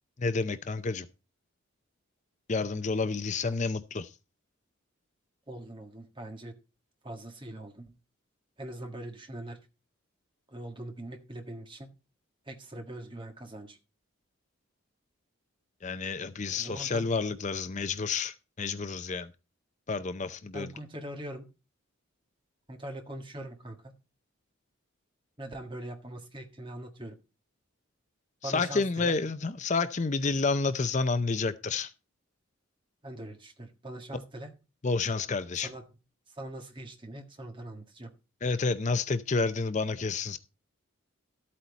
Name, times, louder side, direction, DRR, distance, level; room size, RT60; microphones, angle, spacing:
voice 1, 0.2-1.1 2.5-4.1 15.8-19.3 19.9-20.7 28.4-31.9 34.8-35.7 38.4-40.4, left 4 dB, 35° left, 0.5 m, -29 dB
voice 2, 5.5-6.6 7.0-7.9 8.6-9.6 10.5-11.9 12.5-13.8 16.6-17.1 20.5-21.5 22.7-23.9 25.4-27.2 28.4-29.2 33.0-34.5 35.6-35.8 36.3-38.1, right 1 dB, 25° right, 1.6 m, -42 dB
13.0 x 8.6 x 4.0 m
head